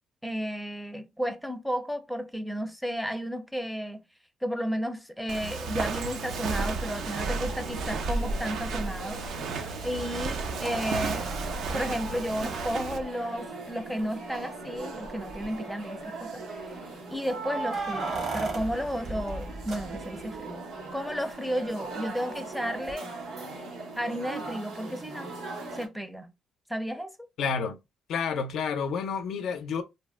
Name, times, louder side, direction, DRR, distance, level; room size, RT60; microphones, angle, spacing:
voice 1, 0.2-4.0 4.4-11.3 11.7-16.8 17.1-20.6 20.9-23.1 24.0-25.3 25.7-26.3 26.7-27.1, equal, ahead, 0.5 m, -33 dB
Walk footsteps, 5.3-13.0, right 4 dB, 75° right, 0.4 m, -33 dB
sound 1, 6.2-25.9, right 3 dB, 90° right, 0.8 m, -40 dB
sound 2, 8.3-8.4 10.6-13.0 14.0-14.1 14.4-14.5 15.0-15.5 17.2-20.4 22.9-23.0, right 3 dB, 55° right, 0.9 m, -36 dB
voice 2, 27.4-27.8 28.1-29.8, left 6 dB, 75° left, 0.4 m, -29 dB
2.7 x 2.1 x 3.3 m
cardioid pair, 90°, 0 cm